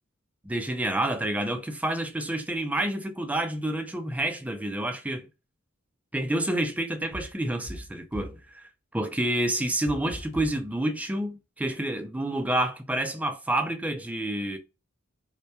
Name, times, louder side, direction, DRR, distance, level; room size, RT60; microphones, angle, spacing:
voice 1, 0.4-5.3 6.1-14.6, right 1 dB, 5° right, 0.3 m, -29 dB
sound 1, 7.1-8.5 9.8-10.7, equal, 50° left, 0.7 m, -40 dB
2.1 x 2.1 x 2.7 m
head